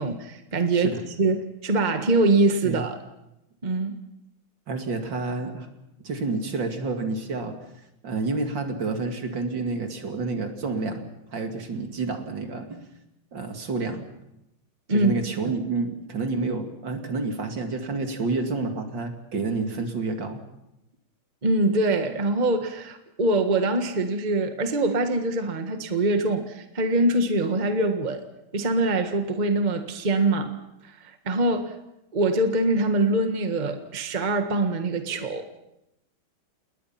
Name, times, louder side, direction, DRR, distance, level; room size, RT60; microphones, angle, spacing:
voice 1, 0.0-0.9 1.2-3.0 3.6-3.9 14.9-15.2 15.4-15.5 21.4-28.2 28.5-30.5 30.8-31.8 32.1-35.4, right 2 dB, 25° right, 6 dB, 1.5 m, -24 dB
voice 2, 4.7-5.7 6.0-7.6 8.0-12.8 13.3-14.1 14.9-20.4, right 3 dB, 60° right, 5 dB, 2.9 m, -29 dB
29.5 x 20.0 x 5.9 m, 0.87 s
omnidirectional pair, 2.2 m